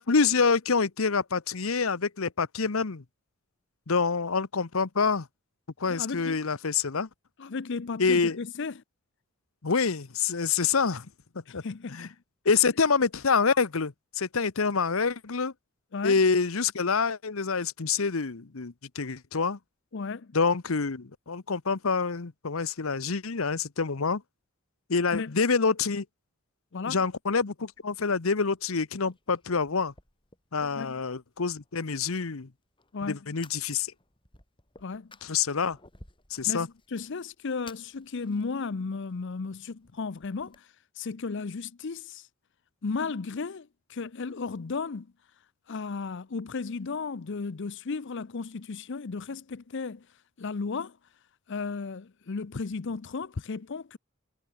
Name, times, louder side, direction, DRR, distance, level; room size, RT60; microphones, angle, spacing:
voice 1, 0.0-3.0 3.9-5.3 5.8-7.1 8.0-8.4 9.6-11.1 11.5-11.6 11.9-12.1 12.4-15.5 16.0-19.6 20.3-24.2 24.9-26.0 26.8-29.9 30.5-32.5 33.0-33.9 35.2-35.8 36.3-36.7, left 5 dB, 75° left, 1.0 m, -26 dB
voice 2, 5.8-6.4 7.4-8.8 11.5-12.1 15.9-16.2 19.9-20.3 25.1-25.3 26.7-27.0 30.6-30.9 32.9-33.3 34.8-35.1 36.4-40.7 41.0-42.3 42.8-45.1 45.7-50.1 50.4-50.9 51.5-54.0, left 4 dB, 60° left, 0.6 m, -34 dB
Fire, 27.6-40.6, left 3 dB, 25° left, 5.1 m, -58 dB
head